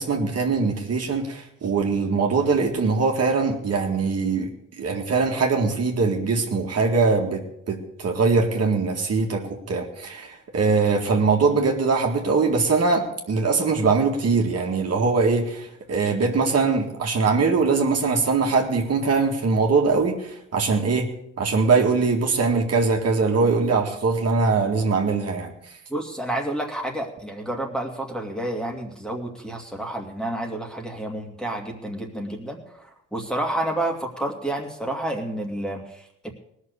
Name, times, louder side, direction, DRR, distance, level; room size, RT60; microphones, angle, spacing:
voice 1, 0.0-21.1 21.4-25.5, right 4 dB, 50° right, 1 dB, 2.0 m, -22 dB
voice 2, 25.9-36.3, right 1 dB, ahead, 2 dB, 2.3 m, -30 dB
18.5 x 6.5 x 6.8 m, 0.76 s
cardioid pair, 90°, 31 cm